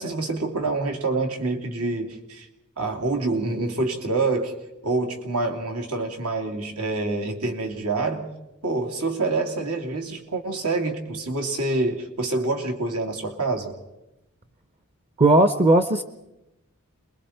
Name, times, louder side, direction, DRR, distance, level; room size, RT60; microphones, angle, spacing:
voice 1, 0.0-2.5 2.8-4.5 4.8-8.3 8.6-13.8, right 3 dB, 85° right, 3 dB, 2.8 m, -26 dB
voice 2, 15.2-16.0, right 2 dB, 30° right, 9 dB, 0.7 m, -17 dB
28.5 x 21.5 x 4.4 m, 0.94 s
head